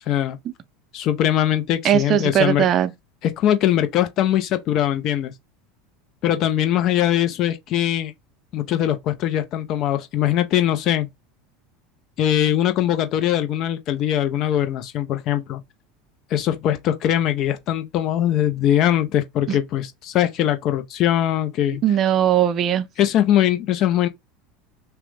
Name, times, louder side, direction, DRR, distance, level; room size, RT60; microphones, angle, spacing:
voice 1, 0.1-0.4 0.9-2.7 3.2-5.3 6.2-8.1 8.5-11.1 12.2-15.6 16.3-21.8 23.0-24.1, left 11 dB, 50° left, 0.5 m, -21 dB
voice 2, 1.8-2.9 19.5-19.6 21.8-22.9, right 10 dB, 40° right, 0.4 m, -19 dB
2.9 x 2.1 x 3.2 m
hypercardioid pair, 85°, 0 cm